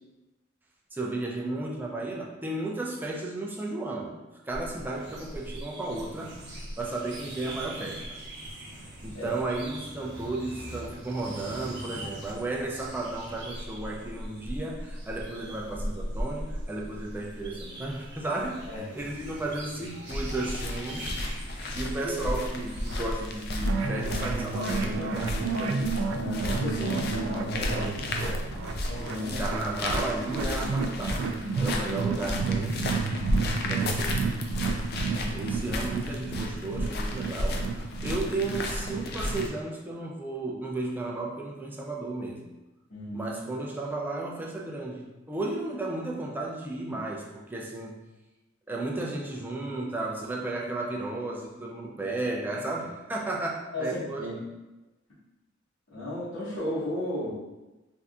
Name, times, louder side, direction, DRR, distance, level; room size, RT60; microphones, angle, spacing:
voice 1, 0.9-4.2 4.4-6.4 6.8-8.2 9.0-21.1 21.7-25.9 29.2-31.3 31.6-32.8 33.7-34.3 35.3-37.7 38.0-42.5 43.1-48.0 48.7-54.2, right 2 dB, 10° right, -2 dB, 0.4 m, -34 dB
sound 1, 4.5-23.4, equal, 60° right, 0.7 m, -40 dB
sound 2, 20.1-39.5, left 1 dB, 55° left, 0.4 m, -33 dB
voice 2, 21.8-22.2 26.2-29.4 33.1-33.3 35.1-35.4 42.9-43.4 53.7-54.3 55.9-57.3, left 1 dB, 70° left, -15 dB, 1.3 m, -35 dB
sound 3, 23.6-39.6, right 4 dB, 85° right, 0.3 m, -31 dB
3.4 x 2.7 x 2.4 m, 1.1 s
head